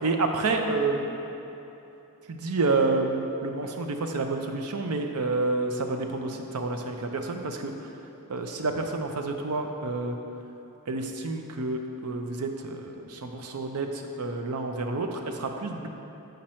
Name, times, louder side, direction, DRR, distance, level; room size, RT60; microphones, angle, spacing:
voice 1, 0.0-1.1 2.3-7.7 8.3-10.1 10.9-13.9 14.2-15.9, right 3 dB, 85° right, 4 dB, 0.6 m, -29 dB
7.6 x 5.2 x 4.3 m, 3.0 s
head